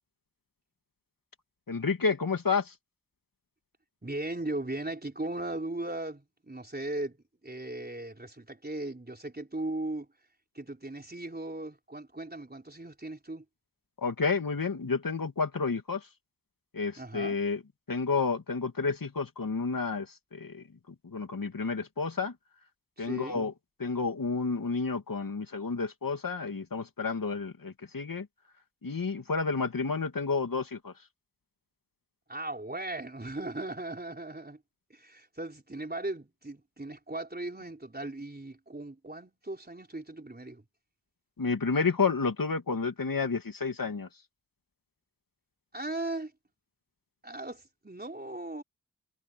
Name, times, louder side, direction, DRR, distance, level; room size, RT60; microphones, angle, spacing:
voice 1, 1.7-2.7 14.0-16.0 16.7-17.6 17.9-20.1 20.3-20.6 21.0-22.3 23.0-23.5 23.8-28.3 28.8-30.9 41.4-44.1, left 4 dB, 80° left, 2.7 m, -30 dB
voice 2, 4.0-7.2 7.4-10.1 10.5-13.4 17.0-17.4 23.0-23.4 32.3-34.6 34.9-40.6 45.7-46.3 47.2-48.6, right 2 dB, 30° right, 4.2 m, -37 dB
wide cardioid pair, 55°, 34 cm